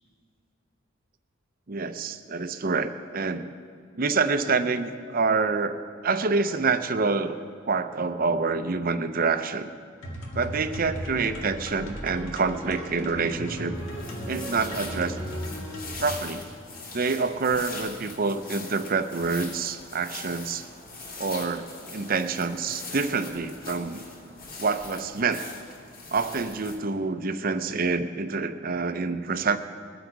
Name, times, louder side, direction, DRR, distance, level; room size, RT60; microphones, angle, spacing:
voice 1, 1.7-3.5 4.0-5.8 6.0-7.4 7.7-9.7 10.3-13.9 14.3-15.2 16.0-16.5 16.9-20.6 21.2-24.0 24.6-25.5 26.1-29.6, right 4 dB, 45° right, 10 dB, 0.6 m, -27 dB
sound 1, 10.0-16.3, equal, 70° left, 2.2 m, -36 dB
sound 2, 13.7-26.8, left 3 dB, 45° left, 2.8 m, -41 dB
21.5 x 7.9 x 4.7 m, 2.2 s
head